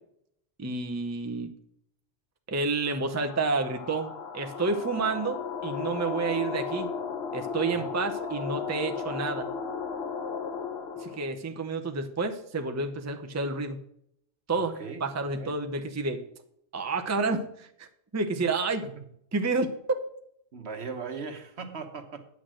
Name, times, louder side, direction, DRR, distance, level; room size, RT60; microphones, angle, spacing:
voice 1, 0.6-1.5 2.5-6.9 7.3-9.5 11.0-13.8 14.5-16.2 16.7-17.9 18.1-18.8 19.3-19.7, right 3 dB, 15° right, 6 dB, 0.7 m, -30 dB
sound 1, 2.9-11.3, left 5 dB, 65° left, 1.2 m, -35 dB
voice 2, 14.5-15.0 15.3-15.7 20.5-22.3, right 5 dB, 65° right, 6 dB, 1.4 m, -39 dB
9.5 x 6.3 x 6.3 m, 0.72 s
omnidirectional pair, 1.2 m